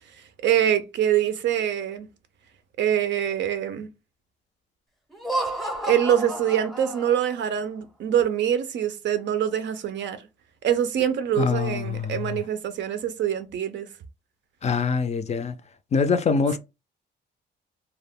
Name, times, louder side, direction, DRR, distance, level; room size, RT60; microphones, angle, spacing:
voice 1, 0.4-2.1 2.8-3.9 5.8-10.2 10.6-13.9, right 10 dB, 65° right, 0.5 m, -24 dB
Laughter, 5.1-7.4, right 1 dB, ahead, 0.7 m, -31 dB
voice 2, 11.4-12.4 14.6-15.6 15.9-16.6, left 5 dB, 35° left, 0.4 m, -24 dB
2.3 x 2.0 x 3.5 m
cardioid pair, 90°, 20 cm